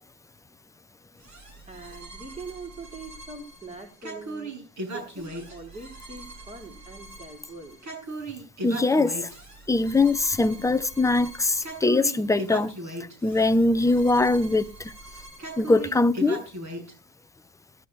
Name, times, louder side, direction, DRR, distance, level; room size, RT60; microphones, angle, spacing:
sound 1, 1.2-16.9, right 2 dB, 45° right, 7.1 m, -39 dB
voice 1, 1.7-4.5 4.9-7.8, right 3 dB, 15° right, 3.1 m, -42 dB
voice 2, 8.6-9.3 9.7-12.8 13.2-14.9 15.6-16.4, left 2 dB, 10° left, 0.6 m, -22 dB
16.5 x 13.5 x 3.2 m
supercardioid pair, 90°, 40 cm